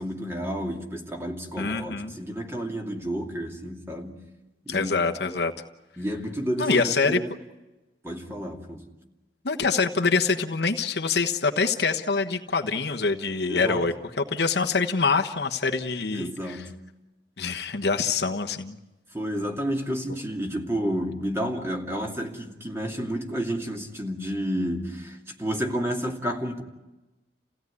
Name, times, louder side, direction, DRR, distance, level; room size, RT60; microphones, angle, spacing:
voice 1, 0.0-4.3 4.6-4.9 5.2-5.4 6.0-7.3 8.0-8.8 13.5-13.9 16.1-16.8 19.1-26.6, equal, 15° right, 2.6 m, -31 dB
voice 2, 1.6-2.1 4.7-5.5 6.6-7.2 9.4-16.6 17.4-18.8, left 4 dB, 65° left, 1.2 m, -25 dB
29.5 x 16.5 x 9.7 m
head